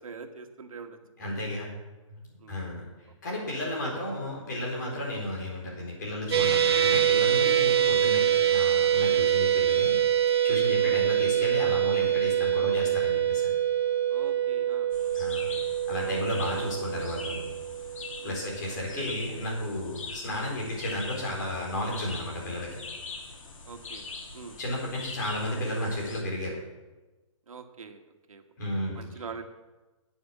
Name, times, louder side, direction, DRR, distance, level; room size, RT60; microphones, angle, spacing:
voice 1, 0.0-1.0 2.4-2.6 3.8-3.9 5.0-5.1 7.9-8.0 9.1-9.3 10.8-11.0 14.1-14.9 16.0-16.3 18.2-18.4 18.7-19.2 23.6-24.0 24.3-24.6 27.5-28.0 28.3-28.4 28.9-29.4, right 5 dB, 90° right, 6 dB, 1.6 m, -43 dB
voice 2, 1.2-1.7 2.2-10.0 10.4-13.5 15.2-15.5 15.9-17.4 18.2-22.8 24.6-26.6 28.6-29.4, left 1 dB, 35° left, -3 dB, 4.5 m, -33 dB
sound 1, 6.3-18.6, right 10 dB, 50° right, 1.5 m, -25 dB
sound 2, 14.9-26.2, left 4 dB, 75° left, 2.9 m, -43 dB
9.4 x 8.8 x 7.2 m, 1.2 s
hypercardioid pair, 180°, 17 cm